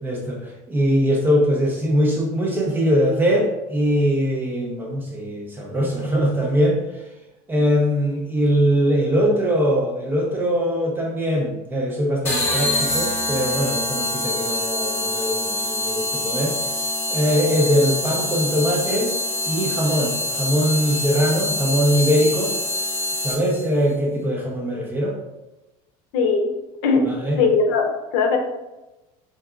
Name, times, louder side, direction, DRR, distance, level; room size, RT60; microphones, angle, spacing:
voice 1, 0.0-6.8 7.5-16.6 17.1-19.1 19.4-22.5 23.2-25.2 27.0-27.4, equal, 10° right, -1 dB, 0.5 m, -21 dB
sound 1, 12.2-23.7, left 2 dB, 15° left, 0.8 m, -25 dB
voice 2, 26.1-26.5 26.8-27.1 27.4-28.4, left 4 dB, 60° left, 3 dB, 0.7 m, -19 dB
4.5 x 3.7 x 2.3 m, 1.0 s
cardioid pair, 180°, 17 cm